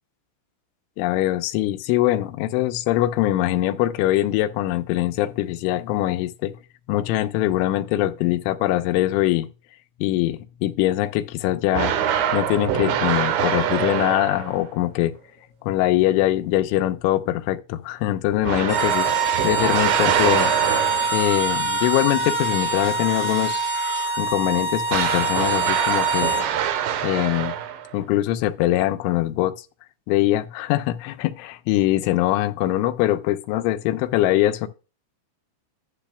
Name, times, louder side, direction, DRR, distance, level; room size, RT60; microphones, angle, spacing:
voice 1, 1.0-6.6 6.9-9.5 10.0-11.9 12.3-15.1 15.6-20.5 21.1-23.6 24.2-26.3 27.0-27.5 27.9-29.6 30.1-34.7, left 14 dB, 80° left, 2.8 m, -22 dB
sound 1, 11.7-14.7 18.4-21.3 24.9-28.0, right 9 dB, 75° right, 2.9 m, -24 dB
sound 2, 18.6-26.5, right 3 dB, 15° right, 4.8 m, -25 dB
sound 3, 20.3-24.2, right 3 dB, 45° right, 3.2 m, -34 dB
12.0 x 6.3 x 2.2 m
omnidirectional pair, 5.8 m